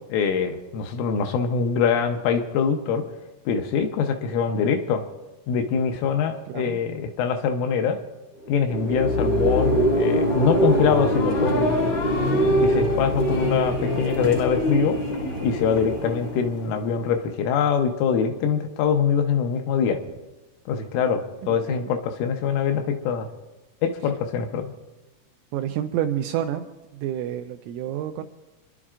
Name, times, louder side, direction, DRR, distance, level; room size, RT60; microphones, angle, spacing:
voice 1, 0.1-3.1 3.5-5.0 5.5-8.0 8.5-11.8 12.3-15.0 15.4-20.0 20.7-23.3 23.8-24.7, left 6 dB, 80° left, 5 dB, 3.3 m, -24 dB
voice 2, 6.5-6.8 21.4-22.0 25.5-26.7 26.9-28.2, right 11 dB, 85° right, 6 dB, 2.7 m, -29 dB
sound 1, 8.4-17.1, equal, 55° left, 1.5 m, -23 dB
29.5 x 11.0 x 2.4 m, 1.1 s
omnidirectional pair, 5.9 m